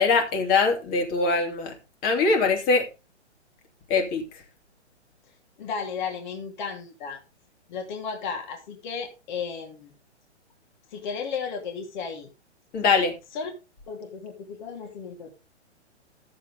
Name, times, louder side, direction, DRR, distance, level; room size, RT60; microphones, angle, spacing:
voice 1, 0.0-1.7 2.0-2.9 3.9-4.2 12.7-13.1, left 4 dB, 25° left, 2.8 m, -22 dB
voice 2, 5.6-7.2 7.7-9.9 10.9-12.3 13.3-13.5 13.9-15.3, left 5 dB, 40° left, 2.8 m, -34 dB
13.5 x 7.8 x 3.6 m
figure-of-eight pair, 125°, 35 cm